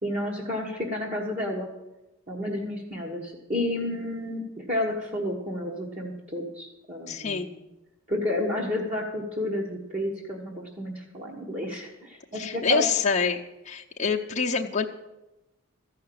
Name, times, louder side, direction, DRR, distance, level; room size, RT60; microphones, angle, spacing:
voice 1, 0.0-1.7 2.3-7.6 8.1-12.9 14.6-14.7, left 1 dB, 35° right, -3 dB, 1.3 m, -31 dB
voice 2, 7.1-7.5 12.4-13.4 13.7-14.9, left 5 dB, 35° left, 0 dB, 0.7 m, -26 dB
14.0 x 5.7 x 8.5 m, 0.99 s
head